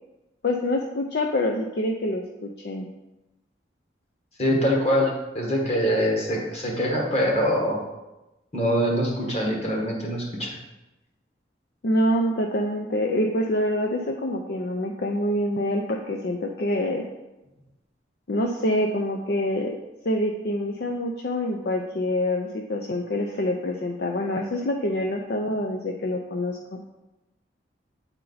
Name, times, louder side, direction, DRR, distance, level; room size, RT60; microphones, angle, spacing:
voice 1, 0.4-2.9 11.8-17.1 18.3-19.7 20.0-27.0, left 1 dB, 60° left, 2 dB, 0.5 m, -26 dB
voice 2, 4.4-7.8 8.5-10.6, equal, 35° left, -1 dB, 1.3 m, -24 dB
7.7 x 4.4 x 3.9 m, 1.0 s
head